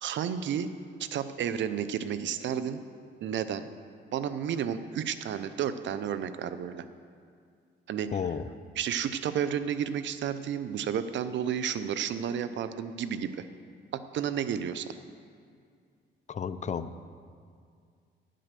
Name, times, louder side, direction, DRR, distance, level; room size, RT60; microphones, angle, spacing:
voice 1, 0.0-0.7 1.0-2.8 3.2-3.6 4.1-6.8 7.9-8.1 8.8-13.4 14.1-15.0, right 8 dB, 70° right, 12 dB, 0.6 m, -31 dB
voice 2, 8.1-8.5 16.3-17.0, left 6 dB, 35° left, 13 dB, 0.5 m, -33 dB
9.9 x 7.6 x 6.8 m, 2.2 s
cardioid pair, 90°, 20 cm